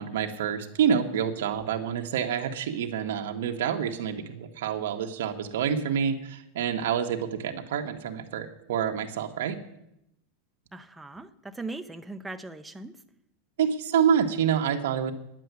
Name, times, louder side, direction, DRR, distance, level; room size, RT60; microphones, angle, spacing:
voice 1, 0.0-9.6 13.6-15.1, right 8 dB, 75° right, 3 dB, 1.4 m, -27 dB
voice 2, 10.7-13.0, right 2 dB, 5° right, 8 dB, 0.6 m, -39 dB
10.0 x 7.6 x 9.4 m, 0.81 s
supercardioid pair, 165°, 0 cm